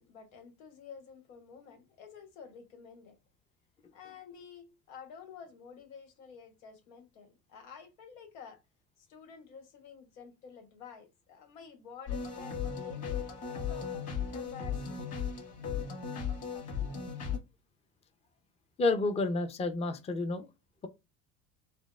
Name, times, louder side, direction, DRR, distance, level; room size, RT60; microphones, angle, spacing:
voice 1, 0.0-3.2 3.9-8.6 9.0-13.9 14.3-15.0, left 6 dB, 90° left, 1.0 m, -50 dB
sound 1, 12.1-17.4, left 7 dB, 40° left, 1.6 m, -36 dB
voice 2, 18.8-20.5, left 3 dB, 15° left, 0.5 m, -30 dB
4.4 x 2.0 x 2.2 m
supercardioid pair, 90°, 39 cm